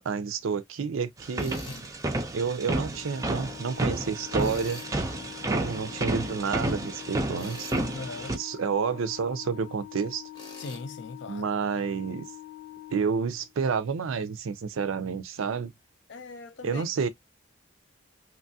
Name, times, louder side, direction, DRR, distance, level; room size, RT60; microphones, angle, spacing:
voice 1, 0.0-1.6 2.3-4.8 5.4-8.0 8.3-10.3 11.3-12.3 12.9-15.7 16.6-17.1, right 5 dB, 80° right, 0.4 m, -30 dB
sound 1, 1.2-8.4, right 2 dB, 15° right, 0.4 m, -31 dB
Tools, 1.4-1.9 4.4-4.9 7.3-7.9 10.3-10.8, left 1 dB, 20° left, 0.7 m, -45 dB
Organ, 2.9-13.7, left 15 dB, 80° left, 0.8 m, -45 dB
voice 2, 7.9-8.4 10.6-11.5 16.1-16.8, left 3 dB, 60° left, 0.5 m, -40 dB
3.0 x 2.3 x 2.6 m
head